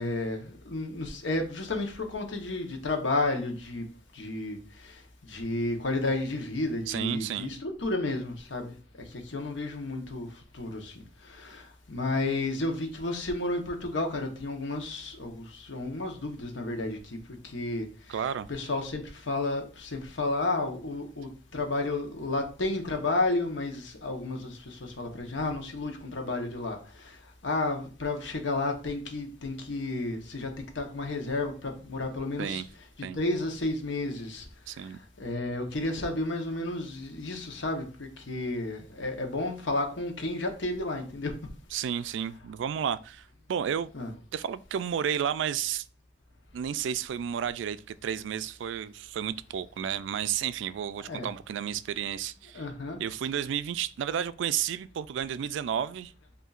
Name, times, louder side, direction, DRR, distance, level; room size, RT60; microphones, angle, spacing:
voice 1, 0.0-3.9 4.1-17.2 17.4-18.1 18.5-32.6 33.1-41.3 43.9-44.1 51.0-51.3 52.5-53.0, left 2 dB, 85° left, 1.0 m, -32 dB
voice 2, 6.9-7.5 18.1-18.5 32.4-32.7 33.0-33.2 34.7-35.0 41.7-43.9 44.3-45.9 46.5-52.7 53.0-56.1, right 8 dB, 85° right, 0.3 m, -32 dB
7.9 x 2.7 x 2.4 m
head